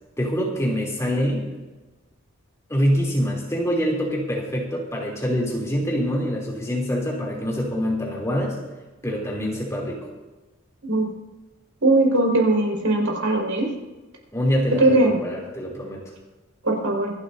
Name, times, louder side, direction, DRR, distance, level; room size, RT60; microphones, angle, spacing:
voice 1, 0.2-1.5 2.7-8.6 9.0-10.1 14.3-16.0, equal, 15° left, -2 dB, 3.0 m, -25 dB
voice 2, 11.8-13.7 14.8-15.1 16.6-17.1, right 2 dB, 85° right, 0 dB, 4.8 m, -19 dB
26.5 x 12.0 x 2.7 m, 1.1 s
head